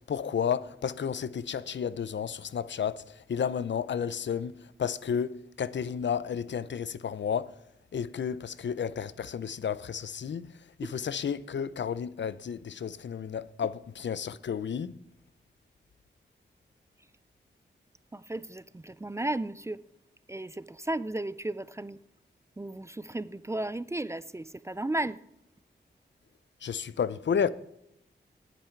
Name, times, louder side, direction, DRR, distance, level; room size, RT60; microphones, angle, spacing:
voice 1, 0.1-3.0 3.3-7.5 7.9-10.5 10.8-14.9 26.6-27.5, left 7 dB, 75° left, 0.6 m, -32 dB
voice 2, 18.1-19.8 20.3-22.0 22.6-25.2, right 1 dB, 15° right, 0.4 m, -34 dB
18.5 x 9.3 x 4.6 m
wide cardioid pair, 140°, 19 cm